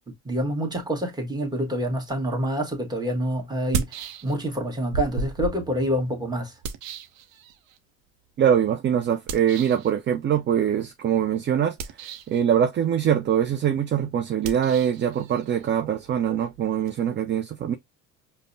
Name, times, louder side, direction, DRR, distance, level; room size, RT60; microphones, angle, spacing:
voice 1, 0.1-6.5, equal, 10° right, 1.4 m, -27 dB
sound 1, 2.6-2.7 3.5-4.6 4.9-7.8 9.3-9.9 11.7-12.4 14.4-17.0, right 5 dB, 80° right, 0.7 m, -34 dB
voice 2, 8.4-17.8, right 9 dB, 30° right, 0.5 m, -23 dB
5.1 x 2.1 x 2.5 m
hypercardioid pair, 70°, 39 cm